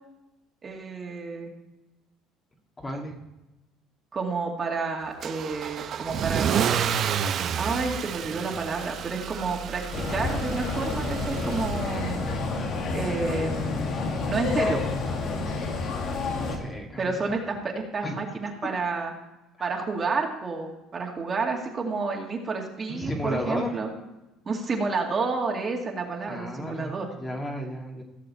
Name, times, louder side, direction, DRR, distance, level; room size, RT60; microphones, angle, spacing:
voice 1, 0.6-1.5 4.1-6.8 7.6-12.3 12.9-13.8 14.3-14.9 17.0-19.1 19.6-23.9 24.4-27.1, right 4 dB, 35° right, 1 dB, 2.3 m, -30 dB
voice 2, 2.8-3.2 16.3-17.2 18.0-18.2 22.9-23.8 26.3-28.0, equal, 20° left, 1 dB, 2.2 m, -33 dB
Car / Engine starting / Accelerating revving vroom, 5.2-12.3, right 8 dB, 50° right, 0.8 m, -30 dB
sound 1, 9.9-16.6, left 3 dB, 55° left, 1.9 m, -29 dB
16.5 x 6.8 x 4.3 m, 1.0 s
supercardioid pair, 95°, 0 cm